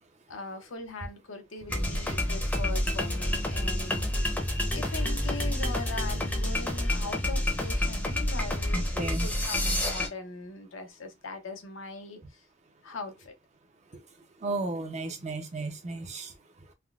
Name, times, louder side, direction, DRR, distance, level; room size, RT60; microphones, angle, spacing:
voice 1, 0.3-4.0 4.7-8.8 9.2-12.2 12.8-13.3, left 3 dB, 85° left, 0.7 m, -40 dB
sound 1, 1.7-10.1, left 1 dB, 10° left, 0.7 m, -28 dB
voice 2, 8.7-9.3 13.9-14.0 14.4-16.3, right 2 dB, 35° right, 0.6 m, -34 dB
3.5 x 2.1 x 2.3 m
head